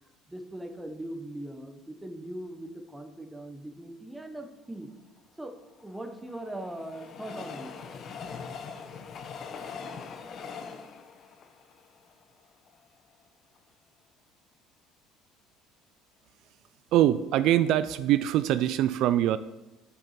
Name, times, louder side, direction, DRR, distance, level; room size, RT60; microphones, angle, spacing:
voice 1, 0.3-4.9 5.4-5.6 5.8-7.7, right 1 dB, 10° right, 6 dB, 1.1 m, -40 dB
Train, 5.5-12.8 13.3-13.4 13.6-13.7, left 5 dB, 45° left, 1.0 m, -42 dB
voice 2, 16.9-19.4, right 12 dB, 65° right, 14 dB, 0.3 m, -23 dB
7.0 x 6.9 x 5.8 m, 1.0 s
cardioid pair, 105°, 0 cm